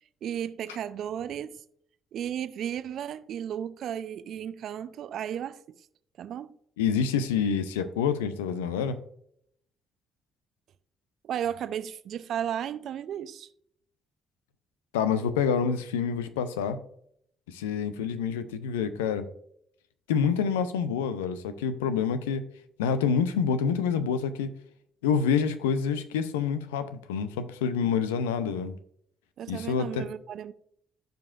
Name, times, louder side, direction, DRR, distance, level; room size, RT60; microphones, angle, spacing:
voice 1, 0.2-1.6 2.1-5.8 6.2-6.5 11.2-13.5 29.4-30.5, right 9 dB, 60° right, 0.5 m, -34 dB
voice 2, 6.8-9.0 14.9-16.8 17.5-19.3 20.1-22.4 22.8-24.5 25.0-28.8 29.5-30.1, left 6 dB, 85° left, 0.6 m, -27 dB
15.0 x 5.2 x 2.5 m
hypercardioid pair, 45°, 0 cm